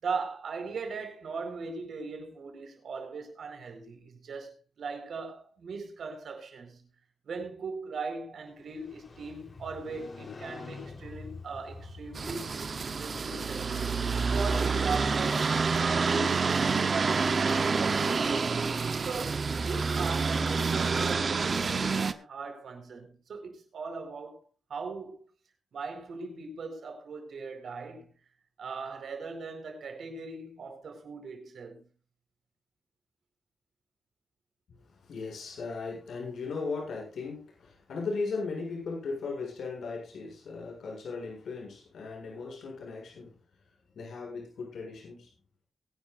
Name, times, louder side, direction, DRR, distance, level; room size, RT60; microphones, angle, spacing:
voice 1, 0.0-6.9 7.2-12.6 12.9-13.8 14.3-18.5 19.0-24.4 24.7-25.2 25.7-28.1 28.6-31.9, right 4 dB, 70° right, 4.7 m, -39 dB
Motorcycle, 8.6-14.5, left 3 dB, 40° left, 3.8 m, -47 dB
sound 1, 12.1-22.1, right 4 dB, 40° right, 0.9 m, -28 dB
voice 2, 35.0-43.3 44.0-45.3, left 4 dB, 85° left, 7.4 m, -37 dB
22.5 x 11.0 x 2.6 m
wide cardioid pair, 140°, 0 cm